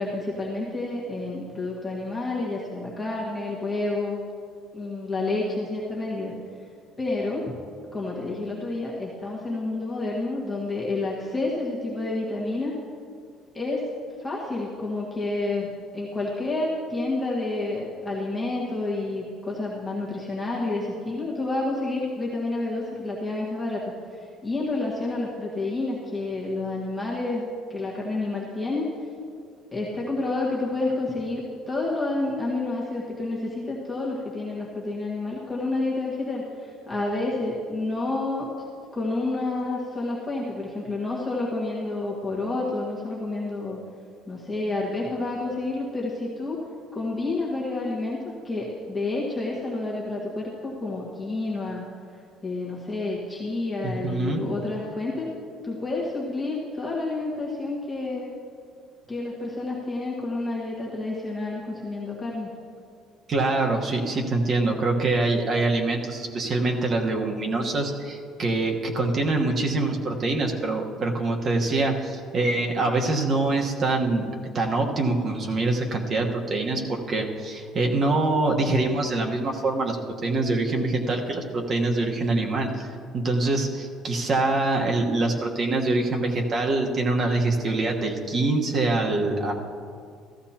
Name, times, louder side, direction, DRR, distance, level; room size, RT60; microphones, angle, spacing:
voice 1, 0.0-4.2 4.7-6.3 7.0-7.6 7.9-12.7 13.5-13.9 14.2-27.4 27.7-28.9 29.7-38.5 38.9-43.8 44.3-46.6 46.9-48.2 48.4-51.8 52.4-55.3 55.6-58.3 59.1-62.5, left 2 dB, 10° left, -5 dB, 1.6 m, -29 dB
voice 2, 53.8-54.4 63.3-74.3 74.5-80.0 80.2-89.5, right 2 dB, 35° right, 1 dB, 1.3 m, -24 dB
15.5 x 14.0 x 2.9 m, 2.2 s
cardioid pair, 155°, 0 cm